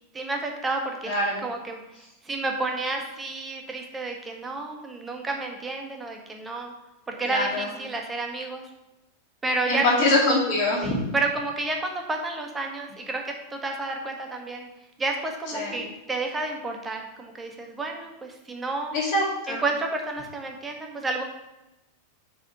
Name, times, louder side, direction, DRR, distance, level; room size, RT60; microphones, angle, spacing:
voice 1, 0.1-1.8 2.2-6.7 7.2-8.6 9.4-9.8 10.8-14.7 15.0-18.9 19.5-21.2, right 3 dB, 15° right, 2 dB, 1.1 m, -30 dB
voice 2, 1.1-1.5 7.2-7.7 9.7-10.9 15.5-15.7 18.9-19.6, left 2 dB, 45° left, -4 dB, 2.4 m, -24 dB
5.0 x 4.9 x 5.9 m, 0.95 s
figure-of-eight pair, 90°, 0 cm